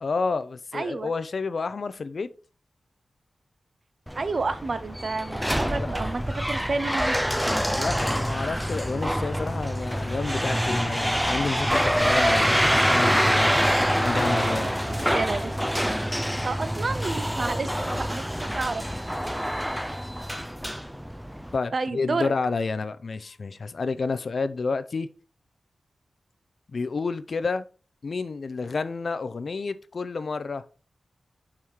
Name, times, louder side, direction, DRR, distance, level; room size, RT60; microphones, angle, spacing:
voice 1, 0.0-2.3 5.8-5.9 7.8-13.5 14.0-14.7 21.5-25.1 26.7-27.6 28.0-30.6, left 4 dB, 60° left, 0.5 m, -30 dB
voice 2, 0.7-1.1 4.2-7.2 14.2-15.5 16.4-18.8 19.2-19.6 21.7-22.3, right 3 dB, 50° right, 0.7 m, -30 dB
sound 1, 4.1-21.6, equal, ahead, 0.4 m, -26 dB
5.7 x 4.8 x 4.5 m
wide cardioid pair, 85°, 0 cm